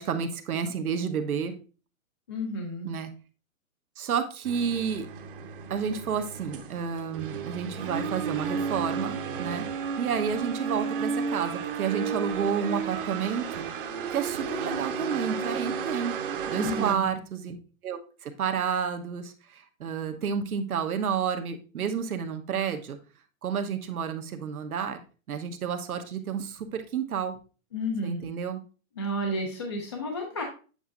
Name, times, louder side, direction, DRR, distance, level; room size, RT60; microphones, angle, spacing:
voice 1, 0.0-1.5 2.8-3.1 4.0-5.1 5.7-9.6 10.0-13.7 14.1-16.1 16.5-17.6 17.8-23.0 23.4-25.0 25.3-27.4 28.0-28.6, right 7 dB, 90° right, 6 dB, 1.1 m, -30 dB
voice 2, 2.3-2.9 16.5-17.1 27.7-28.3 29.0-30.4, equal, 20° left, 2 dB, 0.4 m, -31 dB
sound 1, 4.4-16.9, right 6 dB, 40° right, 0.8 m, -33 dB
7.8 x 5.5 x 2.5 m, 0.35 s
hypercardioid pair, 165°, 42 cm